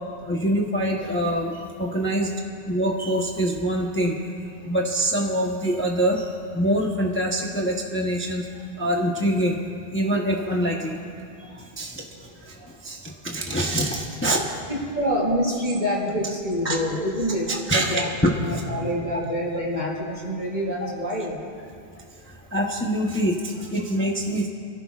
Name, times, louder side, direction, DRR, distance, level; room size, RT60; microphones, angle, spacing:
voice 1, 0.2-2.3 2.7-4.2 4.6-8.5 8.8-9.6 9.9-11.0 11.4-14.4 16.6-16.8 17.5-18.6 22.3-24.5, right 1 dB, 10° left, -1 dB, 0.9 m, -25 dB
voice 2, 14.9-18.1 18.4-21.4, equal, 45° right, -5 dB, 4.0 m, -26 dB
27.0 x 15.5 x 2.4 m, 2.4 s
omnidirectional pair, 1.0 m